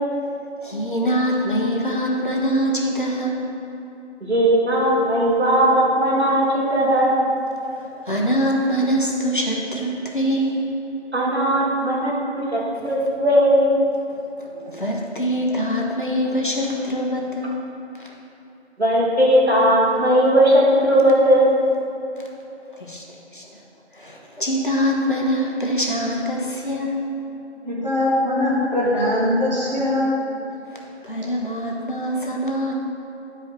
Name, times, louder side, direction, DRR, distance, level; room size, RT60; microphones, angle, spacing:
voice 1, 0.6-3.4 7.8-10.6 14.4-17.6 18.0-18.1 22.8-23.0 23.3-23.4 23.9-27.0 31.0-32.7, equal, 45° left, -1 dB, 1.0 m, -24 dB
voice 2, 4.3-7.2 11.1-13.7 18.8-21.5, equal, 65° right, -4 dB, 2.0 m, -18 dB
voice 3, 27.6-30.2, left 1 dB, 40° right, -6 dB, 1.7 m, -21 dB
10.5 x 5.0 x 4.3 m, 3.0 s
figure-of-eight pair, 175°, 34 cm